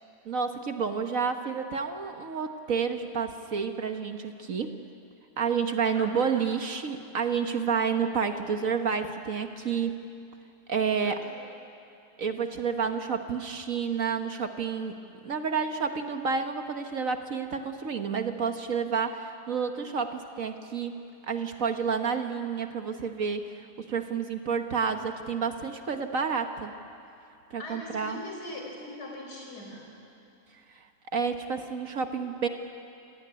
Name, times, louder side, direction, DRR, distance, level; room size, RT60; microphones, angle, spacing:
voice 1, 0.2-4.7 5.4-9.9 10.7-11.2 12.2-15.0 15.2-20.9 21.2-26.7 27.5-28.2 30.7-30.9 31.1-32.5, right 6 dB, 55° right, 7 dB, 1.5 m, -30 dB
voice 2, 5.9-6.4 11.0-11.4 27.6-29.9, left 1 dB, 70° left, 0 dB, 5.9 m, -41 dB
28.0 x 18.0 x 10.0 m, 2.6 s
omnidirectional pair, 1.8 m